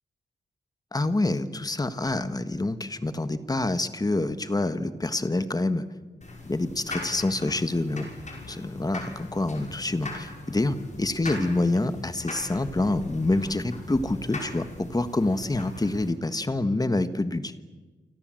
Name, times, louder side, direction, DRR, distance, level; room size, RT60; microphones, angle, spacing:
voice 1, 0.9-5.8 6.5-8.1 8.5-17.5, left 2 dB, 20° left, 11 dB, 1.4 m, -27 dB
sound 1, 6.2-16.1, left 2 dB, 40° left, 6.1 m, -40 dB
29.0 x 25.5 x 7.7 m, 1.3 s
wide cardioid pair, 155°, 19 cm